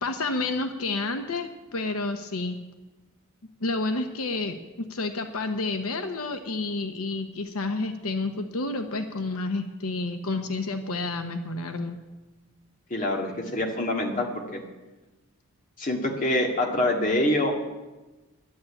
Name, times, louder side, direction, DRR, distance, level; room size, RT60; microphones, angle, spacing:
voice 1, 0.0-2.6 3.6-12.0, left 3 dB, 85° left, 7 dB, 0.9 m, -30 dB
voice 2, 12.9-14.6 15.8-17.5, left 1 dB, 35° left, 1 dB, 1.9 m, -25 dB
11.0 x 9.5 x 8.4 m, 1.1 s
head